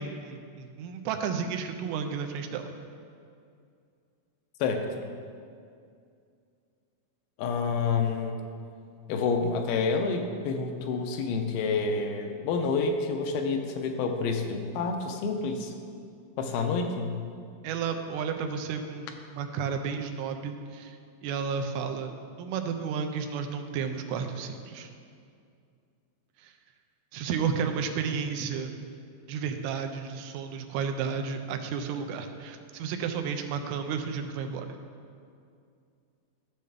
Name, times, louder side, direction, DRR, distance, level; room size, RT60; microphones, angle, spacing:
voice 1, 0.0-2.7 17.6-22.1 22.4-24.9 26.4-26.5 27.1-28.7 29.3-34.7, right 6 dB, 90° right, 6 dB, 2.5 m, -32 dB
voice 2, 7.4-8.4 9.1-15.7 16.4-17.2, left 4 dB, 85° left, 4 dB, 2.6 m, -28 dB
13.5 x 6.5 x 3.4 m, 2.3 s
omnidirectional pair, 4.4 m